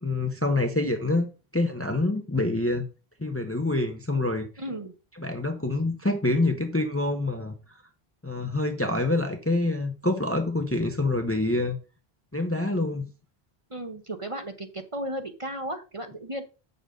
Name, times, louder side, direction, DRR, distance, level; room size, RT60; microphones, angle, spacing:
voice 1, 0.0-2.8 3.2-4.5 5.2-7.5 8.2-11.8 12.3-13.1, left 2 dB, 15° left, 0.8 m, -26 dB
voice 2, 4.6-4.9 13.7-16.4, right 1 dB, 30° right, 1.0 m, -35 dB
8.0 x 6.8 x 3.9 m
omnidirectional pair, 1.1 m